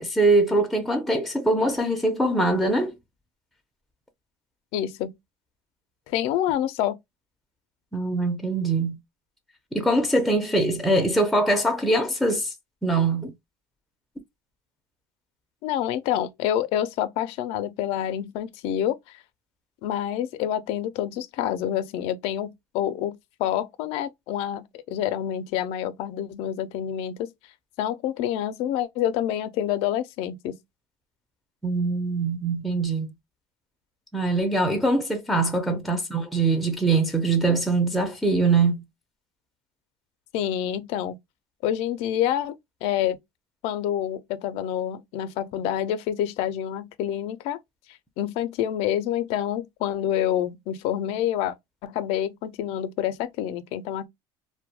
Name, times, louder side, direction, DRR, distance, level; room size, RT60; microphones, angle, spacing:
voice 1, 0.0-2.9 7.9-9.0 9.7-12.5 12.8-13.3 31.6-33.1 34.1-38.8, right 2 dB, ahead, 0.5 m, -23 dB
voice 2, 4.7-5.2 6.1-7.0 15.6-19.2 19.8-27.3 27.8-30.6 35.7-35.8 40.3-41.2 41.6-43.2 43.6-47.6 48.2-51.5 51.8-54.1, left 11 dB, 70° left, 0.4 m, -27 dB
2.2 x 2.1 x 2.8 m
cardioid pair, 120°, 10 cm